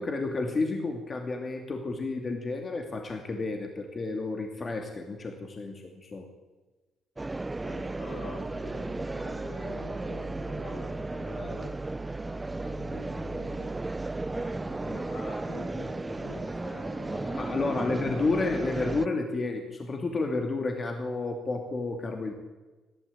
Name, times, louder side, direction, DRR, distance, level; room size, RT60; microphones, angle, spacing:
voice 1, 0.0-6.3 17.4-22.3, left 3 dB, 35° left, 4 dB, 2.6 m, -31 dB
sound 1, 7.2-19.1, right 2 dB, 15° right, 0.7 m, -34 dB
voice 2, 7.6-11.7 12.2-13.8 14.3-18.4, left 2 dB, 80° left, 2 dB, 7.8 m, -45 dB
29.0 x 12.5 x 8.6 m, 1.3 s
cardioid pair, 90°, 0 cm